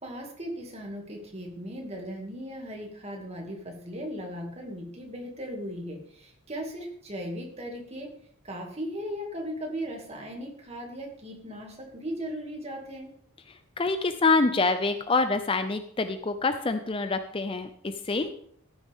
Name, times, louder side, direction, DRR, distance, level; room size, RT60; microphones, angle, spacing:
voice 1, 0.0-8.1 8.4-13.1, equal, 30° right, 1 dB, 2.3 m, -37 dB
voice 2, 13.8-18.3, left 3 dB, 25° left, 9 dB, 0.5 m, -26 dB
14.0 x 9.7 x 3.6 m, 0.64 s
head